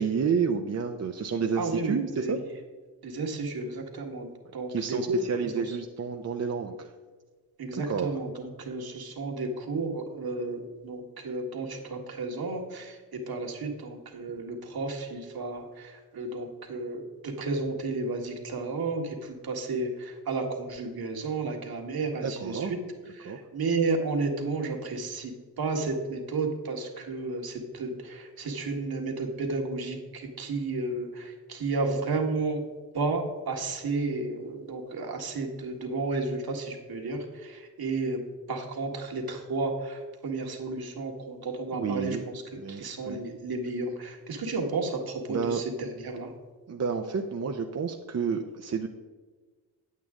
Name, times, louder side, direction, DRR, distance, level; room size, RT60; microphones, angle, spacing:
voice 1, 0.0-2.4 4.7-6.9 7.7-8.1 22.2-22.7 23.2-23.4 41.7-42.2 42.6-43.2 45.3-45.6 46.7-48.9, right 6 dB, 40° right, 4 dB, 0.6 m, -30 dB
voice 2, 1.5-2.4 3.0-5.8 7.6-22.8 23.1-32.6 32.9-38.2 38.5-42.4 42.7-46.3, right 3 dB, 60° right, 2 dB, 1.7 m, -32 dB
9.2 x 8.3 x 3.7 m, 1.4 s
cardioid pair, 80°, 42 cm